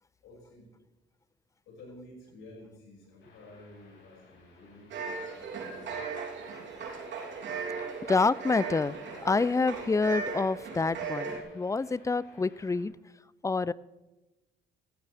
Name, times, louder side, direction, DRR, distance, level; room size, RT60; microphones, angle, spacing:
voice 1, 0.2-0.7 1.7-4.9 5.3-6.1, left 1 dB, 85° left, -3 dB, 6.1 m, -51 dB
sound 1, 3.2-12.8, left 3 dB, 65° left, 5.8 m, -59 dB
sound 2, 4.9-11.4, right 5 dB, 70° right, 3.2 m, -37 dB
voice 2, 8.1-9.0 9.2-12.9 13.4-13.7, left 4 dB, 15° left, 20 dB, 0.3 m, -27 dB
16.5 x 14.0 x 3.5 m, 1.1 s
cardioid pair, 90°, 20 cm